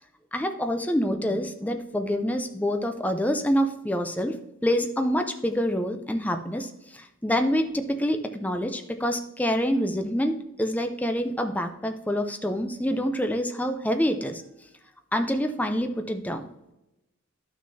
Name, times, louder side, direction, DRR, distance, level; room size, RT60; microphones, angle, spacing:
voice 1, 0.3-4.4 4.6-14.4 15.1-16.5, equal, 5° left, 6 dB, 0.5 m, -26 dB
12.5 x 6.3 x 2.7 m, 0.92 s
head